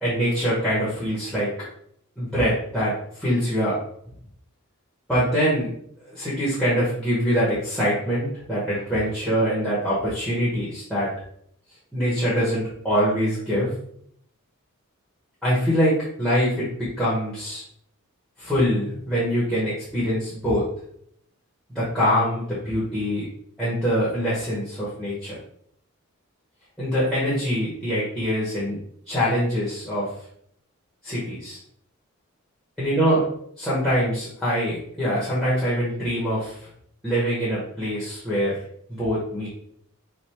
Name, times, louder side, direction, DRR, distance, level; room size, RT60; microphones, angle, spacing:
voice 1, 0.0-1.5 2.2-2.9 3.2-3.8 5.1-5.7 6.1-11.1 11.9-13.7 15.4-17.6 18.4-20.6 21.7-23.3 23.6-25.3 26.8-28.8 29.1-30.1 31.0-31.6 32.8-33.2 33.6-36.6 37.0-38.5 38.9-39.5, equal, ahead, -9 dB, 0.9 m, -24 dB
3.2 x 2.6 x 4.3 m, 0.69 s
head